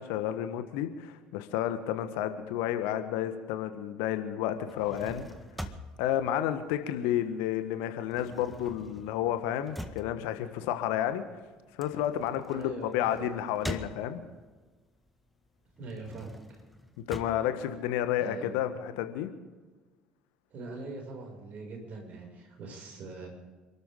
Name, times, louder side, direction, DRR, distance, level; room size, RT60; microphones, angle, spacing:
voice 1, 0.0-5.2 6.0-11.2 11.8-14.2 17.1-19.3, left 11 dB, 65° left, 9 dB, 1.4 m, -31 dB
sound 1, 4.5-7.4 7.7-14.5 15.0-18.5, left 1 dB, ahead, 1.7 m, -44 dB
voice 2, 12.5-13.4 15.8-16.6 18.2-18.6 20.5-23.3, right 3 dB, 45° right, 1 dB, 6.4 m, -42 dB
28.5 x 13.0 x 3.8 m, 1.3 s
figure-of-eight pair, 60°, 4 cm